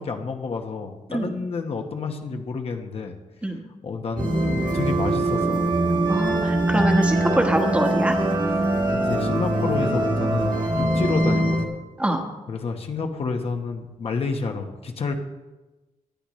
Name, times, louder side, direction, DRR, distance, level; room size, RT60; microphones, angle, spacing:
voice 1, 0.0-3.1 3.8-5.7 6.8-6.9 8.9-11.7 12.5-15.1, left 4 dB, 50° left, 4 dB, 1.1 m, -29 dB
sound 1, 4.2-11.7, right 1 dB, 35° right, 1.6 m, -22 dB
voice 2, 6.1-8.2 12.0-12.2, right 1 dB, 10° right, 3 dB, 1.3 m, -24 dB
18.5 x 12.0 x 3.1 m, 1.1 s
wide cardioid pair, 175°, 13 cm